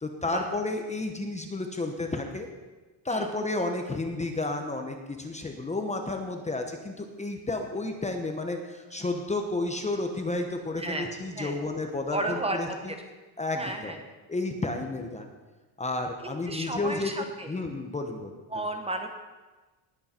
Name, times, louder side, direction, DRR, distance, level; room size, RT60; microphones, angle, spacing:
voice 1, 0.0-2.5 3.0-12.9 13.4-14.0 14.3-15.3 15.8-18.7, left 2 dB, 15° left, 4 dB, 0.9 m, -32 dB
voice 2, 10.8-11.5 12.1-13.0 13.5-14.0 16.2-17.5 18.5-19.1, right 2 dB, 15° right, 5 dB, 1.0 m, -33 dB
19.0 x 8.5 x 4.4 m, 1.2 s
cardioid pair, 150°, 47 cm